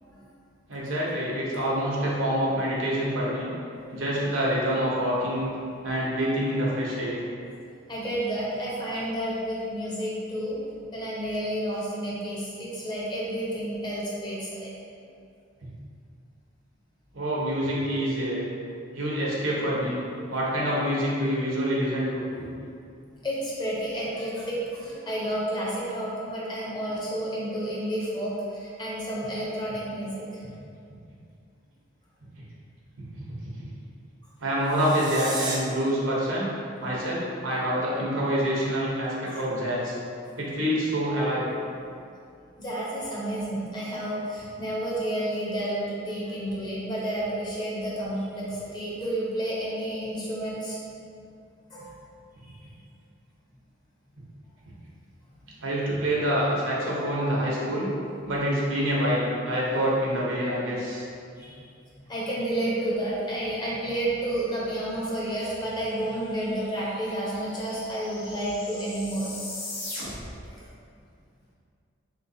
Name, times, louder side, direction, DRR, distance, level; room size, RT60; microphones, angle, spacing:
voice 1, 0.7-3.5 3.9-5.5 5.8-7.2 17.1-18.5 18.9-20.0 20.3-22.2 34.4-36.5 36.8-40.0 40.4-41.4 55.6-57.9 58.3-61.0, equal, 80° right, -5 dB, 0.8 m, -26 dB
voice 2, 7.9-10.6 10.9-14.7 23.2-30.4 39.3-39.4 40.2-40.4 41.8-41.9 42.6-50.8 51.7-51.9 52.4-52.7 55.4-55.5 61.4-61.6 62.1-69.3 70.5-70.6, right 1 dB, 20° left, -7 dB, 0.6 m, -31 dB
sound 1, 34.6-35.6, right 3 dB, 20° right, 0.3 m, -34 dB
sound 2, 66.0-66.1 66.3-70.5, left 2 dB, 85° left, 0.9 m, -40 dB
3.3 x 2.9 x 2.7 m, 2.4 s
head